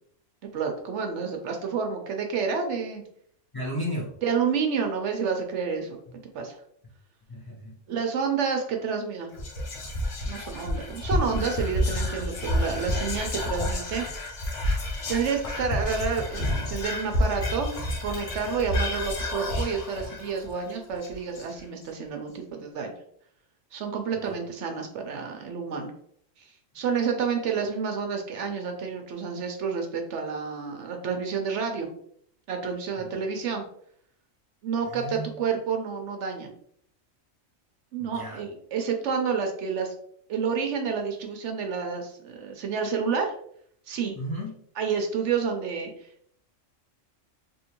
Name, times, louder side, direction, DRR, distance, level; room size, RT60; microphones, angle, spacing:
voice 1, 0.5-3.0 4.2-6.0 6.3-6.6 7.9-9.3 10.2-14.0 15.1-17.7 18.0-22.9 23.7-25.9 26.4-26.5 26.7-31.9 32.5-33.6 34.6-36.5 37.9-39.9 40.3-43.3 43.9-44.2 44.8-45.9, right 6 dB, 70° right, 4 dB, 0.9 m, -29 dB
voice 2, 3.5-4.1 6.1-6.2 7.3-7.7 33.0-33.1 34.9-35.3 38.0-38.4 44.1-44.5, equal, 20° left, -5 dB, 0.7 m, -34 dB
Whispering, 9.3-21.8, left 1 dB, 65° left, 1.1 m, -29 dB
3.5 x 2.8 x 2.9 m, 0.65 s
omnidirectional pair, 1.3 m